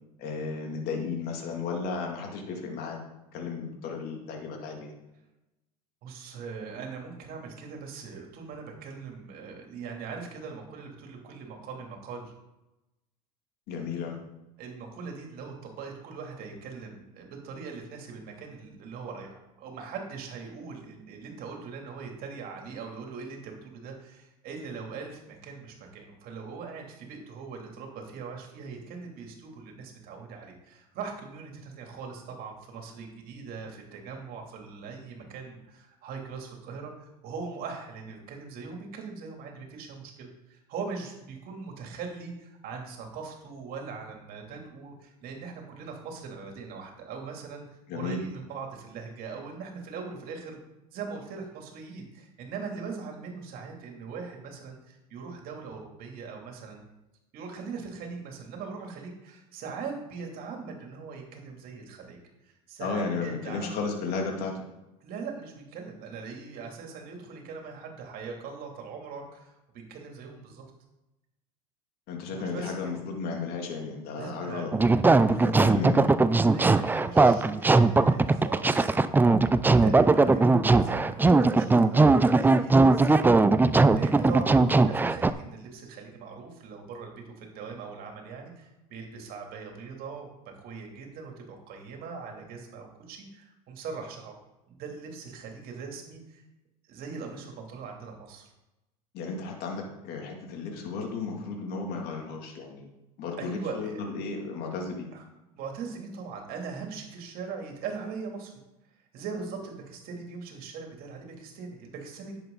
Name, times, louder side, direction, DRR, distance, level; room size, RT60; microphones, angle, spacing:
voice 1, 0.2-3.0 3.3-4.9 13.7-14.2 47.9-48.2 62.8-64.6 72.1-74.7 75.3-76.1 99.1-102.9 103.2-105.1, left 4 dB, 55° left, 1 dB, 2.7 m, -34 dB
voice 2, 6.0-12.2 14.6-47.7 47.9-50.6 50.9-56.8 57.3-62.2 62.5-63.7 65.0-70.6 72.3-72.9 74.2-74.7 75.3-75.9 76.5-78.9 79.6-83.5 83.9-94.4 94.7-96.4 96.9-98.5 103.4-104.1 105.1-105.2 105.5-108.6 109.1-112.4, right 5 dB, 50° right, 1 dB, 3.0 m, -41 dB
sound 1, 74.7-85.3, right 3 dB, 10° right, 0.5 m, -20 dB
10.5 x 8.0 x 4.0 m, 0.95 s
hypercardioid pair, 90°, 19 cm